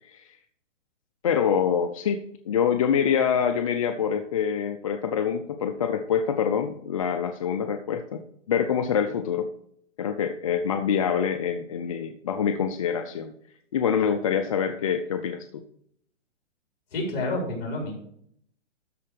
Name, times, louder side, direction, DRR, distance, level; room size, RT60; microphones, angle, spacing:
voice 1, 1.2-8.2 8.5-9.5 10.0-13.3 13.7-15.6, left 7 dB, 30° left, 7 dB, 0.5 m, -25 dB
voice 2, 16.9-17.9, left 2 dB, 50° left, 0 dB, 4.4 m, -29 dB
12.5 x 4.3 x 6.4 m, 0.68 s
hypercardioid pair, 155°, 37 cm